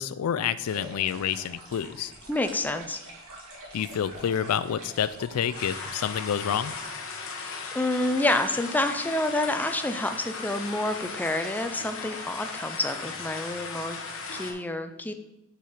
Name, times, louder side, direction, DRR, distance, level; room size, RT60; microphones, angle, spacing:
voice 1, 0.0-2.1 3.7-6.7, left 8 dB, 85° left, 15 dB, 0.4 m, -28 dB
sound 1, 0.6-6.9, right 1 dB, 70° right, 2.2 m, -46 dB
voice 2, 2.3-3.0 7.4-14.0 14.3-15.1, left 2 dB, 10° left, 7 dB, 0.4 m, -28 dB
sound 2, 5.5-14.5, left 4 dB, 65° left, 1.1 m, -37 dB
6.8 x 4.4 x 4.9 m, 0.89 s
head